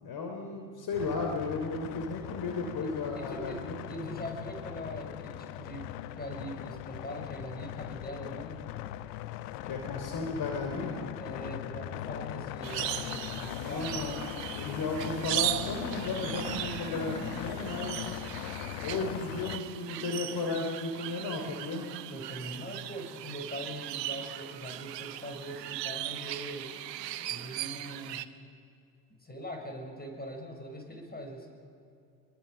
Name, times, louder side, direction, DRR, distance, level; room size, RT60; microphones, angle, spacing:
voice 1, 0.0-4.1 9.6-11.0 13.5-14.2 14.6-18.1 18.8-21.9 27.2-27.3, left 3 dB, 50° left, 2 dB, 3.2 m, -35 dB
sound 1, 0.9-19.6, left 14 dB, 70° left, 1.0 m, -40 dB
voice 2, 3.1-8.7 11.2-13.9 22.1-26.7 27.3-28.3 29.1-31.5, equal, 20° left, 3 dB, 6.4 m, -42 dB
sound 2, 12.6-28.3, right 14 dB, 80° right, 1.0 m, -38 dB
25.5 x 22.0 x 6.8 m, 2.5 s
hypercardioid pair, 55°, 49 cm